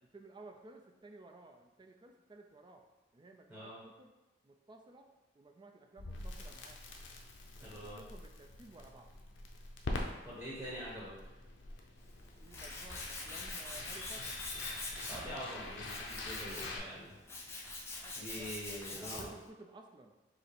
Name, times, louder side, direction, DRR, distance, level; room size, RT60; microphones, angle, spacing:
voice 1, 0.0-2.8 3.1-4.1 4.4-5.1 5.3-6.9 7.6-9.1 12.4-14.4 18.0-20.1, right 2 dB, 25° right, 3 dB, 0.4 m, -55 dB
Crackle, 6.0-16.8, left 2 dB, 90° left, 0.6 m, -45 dB
voice 2, 7.6-8.0 10.2-11.1 15.1-17.1 18.2-19.3, equal, 10° right, -7 dB, 0.9 m, -44 dB
Tools, 12.0-19.4, left 2 dB, 15° left, 0.6 m, -45 dB
5.2 x 2.0 x 4.2 m, 1.1 s
head